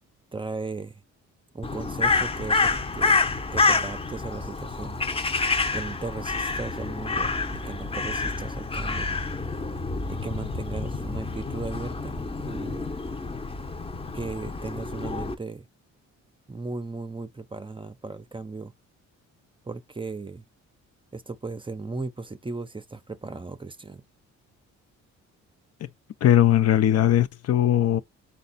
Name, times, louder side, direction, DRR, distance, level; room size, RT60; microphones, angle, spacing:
voice 1, 0.3-1.0 1.5-3.2 3.5-5.0 5.7-9.1 10.1-12.8 14.1-15.7 16.5-18.7 19.7-20.5 21.1-24.0, right 3 dB, 15° right, 0.6 m, -36 dB
Crow, 1.6-15.3, left 4 dB, 20° left, 0.8 m, -28 dB
voice 2, 26.2-28.0, left 11 dB, 55° left, 0.6 m, -19 dB
4.0 x 2.3 x 4.0 m
cardioid pair, 90°, 30 cm